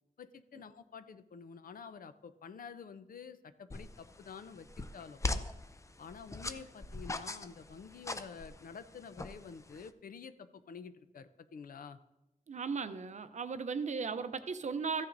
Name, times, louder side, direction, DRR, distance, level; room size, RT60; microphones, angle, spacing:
voice 1, 0.2-5.5 6.0-12.0, left 6 dB, 80° left, 11 dB, 0.5 m, -49 dB
sound 1, 3.7-9.9, left 2 dB, 20° left, 0.4 m, -41 dB
voice 2, 12.5-15.1, right 5 dB, 55° right, 11 dB, 0.5 m, -36 dB
14.5 x 9.8 x 2.6 m, 0.94 s
wide cardioid pair, 135°, 14 cm